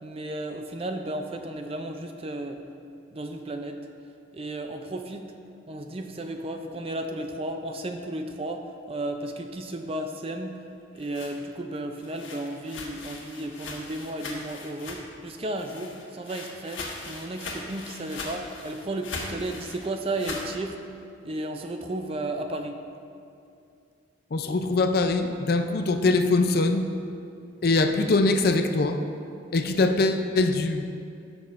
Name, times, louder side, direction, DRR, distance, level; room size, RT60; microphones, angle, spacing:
voice 1, 0.0-2.6 3.1-3.8 4.3-5.3 5.7-10.6 10.9-20.8 21.2-22.8, right 1 dB, 30° right, 5 dB, 0.4 m, -34 dB
sound 1, 10.7-15.3 15.5-20.5, left 3 dB, 85° left, 1.3 m, -40 dB
voice 2, 24.3-26.8 27.6-29.0 29.5-30.8, left 3 dB, 50° left, 7 dB, 0.5 m, -22 dB
14.5 x 6.2 x 2.5 m, 2.5 s
head